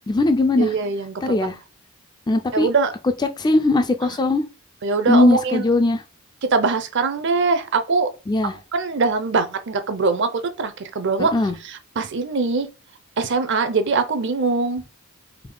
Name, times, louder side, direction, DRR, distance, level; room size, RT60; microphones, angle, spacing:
voice 1, 0.1-0.7 1.2-1.6 2.3-2.7 3.4-4.4 5.1-6.0 8.3-8.5 11.2-11.6, left 2 dB, 20° left, 0.3 m, -19 dB
voice 2, 0.6-1.2 2.5-2.9 4.8-5.6 6.5-8.1 8.7-11.3 11.6-12.7 13.2-14.8, right 4 dB, 55° right, 0.6 m, -22 dB
3.5 x 3.1 x 3.8 m
head